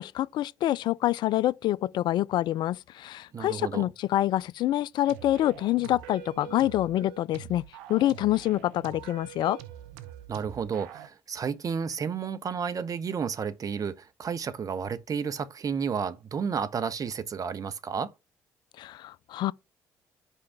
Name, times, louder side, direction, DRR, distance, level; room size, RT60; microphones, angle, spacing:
voice 1, 0.0-7.6 7.9-9.6 18.8-19.5, left 14 dB, 60° left, 0.4 m, -26 dB
voice 2, 3.3-3.9 10.3-18.1, right 6 dB, 45° right, 0.8 m, -32 dB
sound 1, 5.0-11.1, right 11 dB, 80° right, 0.6 m, -45 dB
5.5 x 4.8 x 5.6 m
hypercardioid pair, 50°, 8 cm